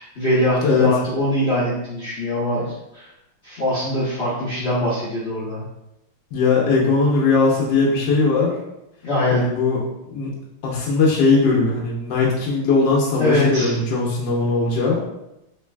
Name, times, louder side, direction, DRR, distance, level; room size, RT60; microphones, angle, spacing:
voice 1, 0.0-3.1 3.4-5.6 9.0-9.4 13.2-13.8, left 1 dB, 90° left, -10 dB, 0.5 m, -22 dB
voice 2, 6.3-8.6 9.3-9.8 10.1-10.3 10.6-15.0, left 4 dB, 75° left, -3 dB, 1.0 m, -19 dB
3.9 x 3.1 x 2.2 m, 0.89 s
omnidirectional pair, 2.4 m